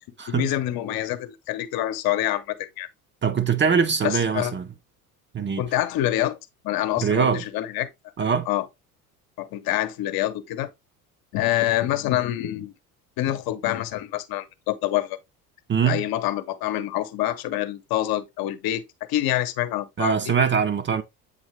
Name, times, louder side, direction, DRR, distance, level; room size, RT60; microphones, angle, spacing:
voice 1, 0.3-2.9 4.0-4.5 5.6-6.4 6.6-7.9 8.5-8.7 9.4-10.7 11.3-12.7 13.2-15.2 15.9-18.8 19.1-20.3, left 14 dB, 50° left, 1.0 m, -26 dB
voice 2, 3.2-4.7 5.3-5.6 7.0-7.4 8.2-8.5 15.7-16.0 20.0-21.0, right 6 dB, 25° right, 0.7 m, -22 dB
7.9 x 4.1 x 3.1 m
hypercardioid pair, 70°, 45 cm